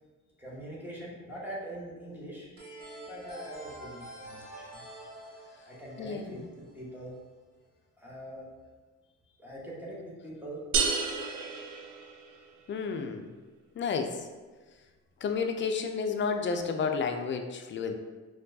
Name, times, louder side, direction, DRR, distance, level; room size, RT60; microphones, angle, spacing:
voice 1, 0.4-2.5 3.0-4.8 5.7-7.2 8.0-8.4 9.4-10.6, right 1 dB, 5° right, -6 dB, 1.1 m, -43 dB
sound 1, 2.6-7.2, right 1 dB, 45° right, 1.4 m, -47 dB
voice 2, 6.0-6.4 12.7-13.2 13.8-14.1 15.2-17.9, left 5 dB, 40° left, 5 dB, 0.4 m, -31 dB
sound 2, 10.7-12.6, right 5 dB, 75° right, 0.5 m, -31 dB
4.3 x 2.4 x 2.7 m, 1.3 s
cardioid pair, 90°, 30 cm